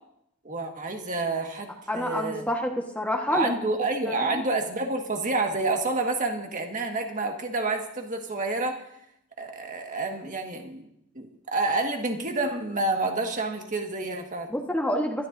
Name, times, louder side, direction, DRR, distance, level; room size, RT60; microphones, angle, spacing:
voice 1, 0.5-2.4 3.3-8.8 9.4-10.9 11.2-14.5, right 2 dB, 40° right, 3 dB, 1.7 m, -29 dB
voice 2, 1.9-3.5 4.0-4.4 14.5-15.3, left 1 dB, 10° left, 1 dB, 1.4 m, -28 dB
24.5 x 13.0 x 2.7 m, 0.79 s
head